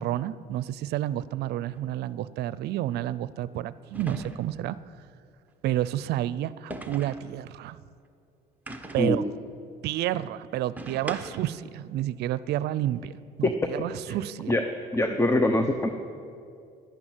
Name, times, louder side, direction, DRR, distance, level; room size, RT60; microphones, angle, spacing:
voice 1, 0.0-4.8 5.6-7.8 8.9-9.2 9.8-13.1 13.4-14.6, right 13 dB, 75° right, 17 dB, 0.5 m, -30 dB
sound 1, 1.7-1.9 3.9-4.7 6.7-7.3 8.7-9.2 10.8-11.6, right 2 dB, 10° right, 1.2 m, -39 dB
voice 2, 14.9-15.9, left 1 dB, 15° left, 6 dB, 0.9 m, -23 dB
12.0 x 11.0 x 9.1 m, 2.4 s
cardioid pair, 110°, 17 cm